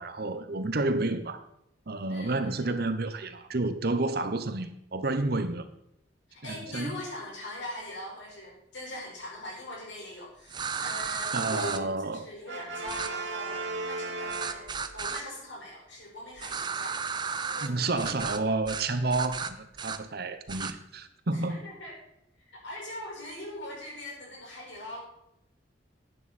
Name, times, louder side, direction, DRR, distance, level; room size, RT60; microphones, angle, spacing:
voice 1, 0.0-1.4 1.9-5.6 6.5-7.0 11.3-12.3 17.6-21.6, right 2 dB, 55° right, 0.9 m, -30 dB
voice 2, 2.1-2.8 6.3-14.7 14.9-17.0 17.4-18.2 21.3-22.0 22.4-25.0, left 1 dB, 80° left, 4.8 m, -42 dB
sound 1, 10.5-11.8 12.9-13.1 14.3-15.2 16.4-17.7 18.0-18.4 18.7-18.8 19.1-20.0 20.5-20.7, right 5 dB, 25° right, 0.5 m, -34 dB
Brass instrument, 12.5-15.1, right 3 dB, 85° right, 1.9 m, -36 dB
11.0 x 9.2 x 4.2 m
head